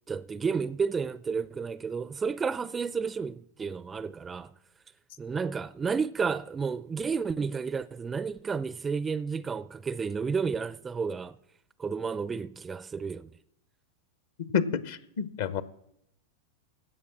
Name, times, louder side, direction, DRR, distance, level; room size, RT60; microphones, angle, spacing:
voice 1, 0.1-4.5 5.2-11.4 11.8-13.3, right 5 dB, 15° right, 0.4 m, -31 dB
voice 2, 14.5-15.6, left 7 dB, 55° left, 0.8 m, -29 dB
16.5 x 6.5 x 7.5 m
figure-of-eight pair, 90°, 0 cm